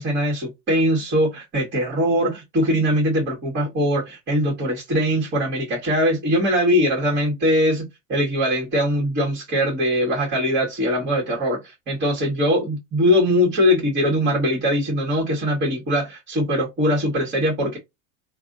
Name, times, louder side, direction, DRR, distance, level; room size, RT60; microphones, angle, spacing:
voice 1, 0.0-17.8, equal, 25° right, 1.8 m, -21 dB
3.3 x 2.6 x 2.7 m
supercardioid pair, 120°, 39 cm